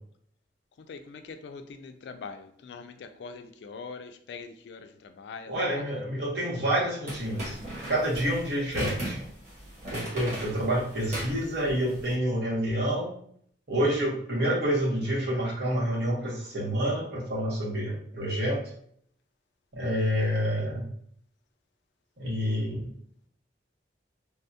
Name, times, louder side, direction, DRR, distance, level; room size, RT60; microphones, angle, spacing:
voice 1, 0.9-2.9 3.2-4.8 5.2-5.5, left 4 dB, 70° left, 0.3 m, -42 dB
voice 2, 5.5-7.6 7.9-9.2 9.9-13.1 13.7-18.6 19.7-20.9 22.2-22.9, equal, 70° right, 1.1 m, -28 dB
sound 1, 7.1-12.1, equal, 40° right, 1.2 m, -37 dB
3.4 x 2.3 x 2.7 m
head